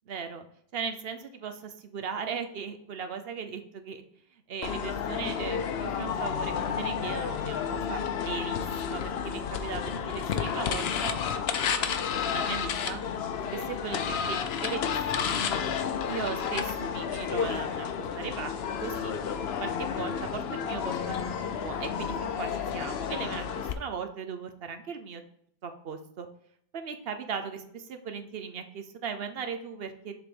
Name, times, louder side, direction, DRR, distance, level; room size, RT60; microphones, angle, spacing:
voice 1, 0.1-0.5 0.7-4.0 4.3-11.2 11.6-13.0 13.5-15.3 16.1-17.9 18.1-19.1 19.6-25.2 25.6-26.3 26.7-30.1, right 6 dB, 70° right, 7 dB, 1.0 m, -38 dB
sound 1, 4.6-23.7, left 7 dB, 75° left, 0.9 m, -31 dB
7.0 x 3.8 x 5.1 m, 0.68 s
omnidirectional pair, 1.1 m